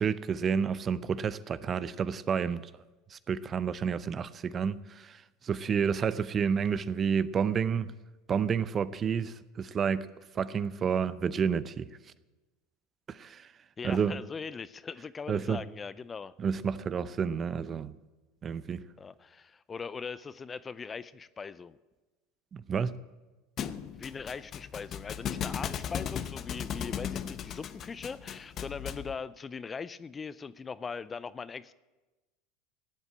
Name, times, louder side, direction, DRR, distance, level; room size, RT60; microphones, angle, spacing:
voice 1, 0.0-2.6 3.1-7.9 8.3-10.1 10.3-11.8 13.1-13.5 13.8-14.2 15.3-15.6 16.4-17.9 18.4-18.8 22.5-23.0, right 7 dB, 35° right, 0.7 m, -30 dB
voice 2, 13.8-16.3 19.0-21.8 24.0-31.7, left 5 dB, 25° left, 0.5 m, -40 dB
Thump thud, 23.6-29.1, left 9 dB, 40° left, 0.8 m, -37 dB
16.0 x 8.1 x 8.7 m
hypercardioid pair, 80°, 0 cm